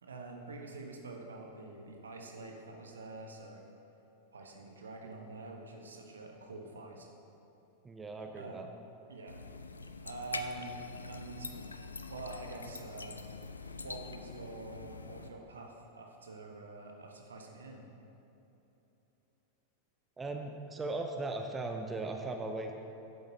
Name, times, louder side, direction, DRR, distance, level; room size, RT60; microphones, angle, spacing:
voice 1, 0.0-3.6 4.3-7.1 8.2-8.7 9.1-9.7 10.0-10.8 11.1-11.5 12.1-13.2 13.7-17.9, right 3 dB, 70° right, 2 dB, 0.9 m, -46 dB
voice 2, 7.8-8.7 20.2-22.7, right 2 dB, 15° right, 4 dB, 0.5 m, -38 dB
sound 1, 9.3-15.3, left 4 dB, 75° left, 0.3 m, -44 dB
10.5 x 7.8 x 2.7 m, 3.0 s
figure-of-eight pair, 90°, 0 cm